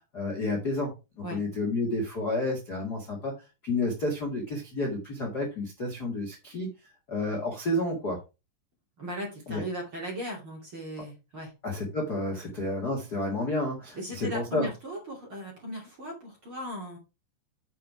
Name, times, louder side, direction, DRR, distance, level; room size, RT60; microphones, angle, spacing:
voice 1, 0.1-3.3 3.6-6.7 7.1-8.2 9.5-9.6 11.6-14.7, left 2 dB, 50° left, 1.1 m, -30 dB
voice 2, 9.0-11.5 12.4-12.5 13.9-17.0, equal, 35° right, 2.4 m, -37 dB
7.6 x 5.5 x 4.8 m
omnidirectional pair, 5.6 m